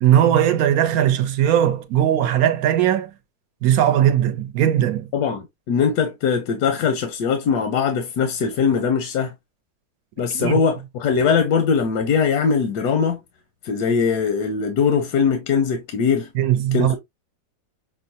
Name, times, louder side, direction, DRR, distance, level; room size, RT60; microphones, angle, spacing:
voice 1, 0.0-3.1 3.6-5.1 10.3-10.6 16.3-17.0, right 11 dB, 70° right, 1.0 m, -18 dB
voice 2, 5.1-9.3 10.2-13.2 13.6-16.3 16.7-17.0, left 6 dB, 85° left, 1.3 m, -21 dB
6.1 x 2.1 x 2.7 m
omnidirectional pair, 1.7 m